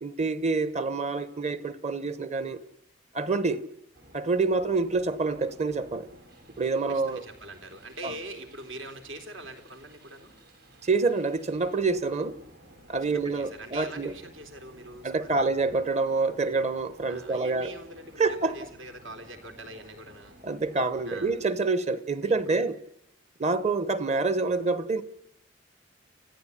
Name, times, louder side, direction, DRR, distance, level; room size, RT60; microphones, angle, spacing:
voice 1, 0.0-2.6 3.1-3.6 4.1-6.1 6.6-7.2 8.0-8.1 10.8-12.4 12.9-14.1 15.0-17.7 18.2-18.5 20.4-22.8 23.4-25.0, right 3 dB, 35° right, 1.1 m, -27 dB
sound 1, 3.9-21.5, right 1 dB, 55° right, 7.3 m, -54 dB
voice 2, 6.9-10.3 13.0-15.5 17.1-20.4 21.1-21.4 22.2-22.4, right 1 dB, 75° right, 3.8 m, -43 dB
30.0 x 15.0 x 10.0 m
head